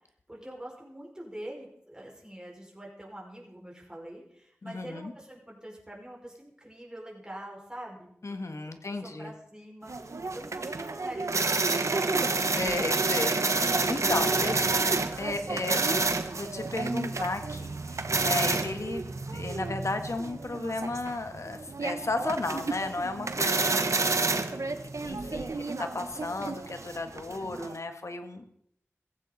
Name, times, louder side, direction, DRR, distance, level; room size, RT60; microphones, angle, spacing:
voice 1, 0.3-8.5 8.9-12.4 14.3-14.5 15.7-16.3, right 1 dB, 15° right, -2 dB, 5.4 m, -44 dB
voice 2, 4.6-5.1 8.2-9.3 12.5-14.7 15.2-16.0 16.4-28.5, left 2 dB, 75° left, 7 dB, 1.5 m, -34 dB
sound 1, 9.9-27.8, right 3 dB, 80° right, 1.0 m, -29 dB
16.0 x 15.5 x 4.1 m, 0.70 s
wide cardioid pair, 60°, 5 cm